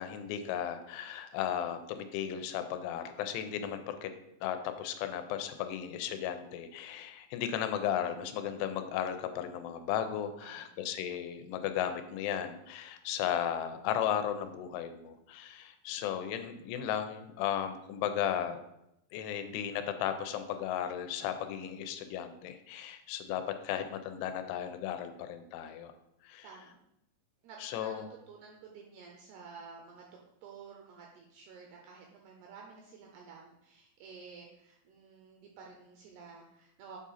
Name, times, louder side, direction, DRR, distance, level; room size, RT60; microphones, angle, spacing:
voice 1, 0.0-4.1 4.4-18.6 19.1-25.9 26.2-26.5 27.6-28.1, left 9 dB, 85° left, 8 dB, 3.0 m, -35 dB
voice 2, 10.4-10.8 26.4-26.8 27.4-27.9 28.3-37.0, right 5 dB, 85° right, 0 dB, 2.3 m, -52 dB
8.0 x 3.7 x 4.1 m, 0.82 s
omnidirectional pair, 5.3 m